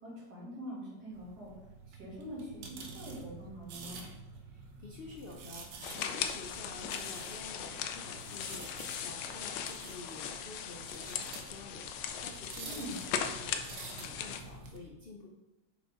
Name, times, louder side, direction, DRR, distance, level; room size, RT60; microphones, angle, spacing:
voice 1, 0.0-1.5 1.9-4.1 12.6-13.0, equal, 60° right, -6 dB, 3.0 m, -44 dB
sound 1, 1.1-14.8, right 4 dB, 85° right, 1.5 m, -49 dB
voice 2, 4.4-15.3, left 3 dB, 60° left, 0 dB, 0.6 m, -50 dB
sound 2, 5.8-14.4, left 8 dB, 90° left, 1.3 m, -39 dB
6.8 x 5.2 x 3.6 m, 0.95 s
omnidirectional pair, 1.9 m